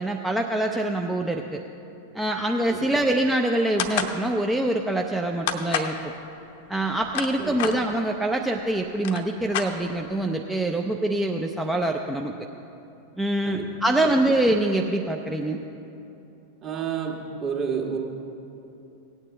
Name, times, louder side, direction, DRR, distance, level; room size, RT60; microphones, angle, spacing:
voice 1, 0.0-1.6 2.1-6.1 6.7-12.3 13.2-15.6, right 1 dB, 5° right, 1 dB, 0.5 m, -25 dB
sound 1, 3.8-4.2 5.5-6.0 6.9-7.8 8.6-8.7 8.9-10.1, left 7 dB, 50° left, 0.8 m, -28 dB
voice 2, 7.4-7.7 13.4-13.7 14.0-14.1 16.6-18.0, right 7 dB, 35° right, -1 dB, 1.6 m, -30 dB
17.5 x 9.0 x 3.3 m, 2.8 s
figure-of-eight pair, 90°, 0 cm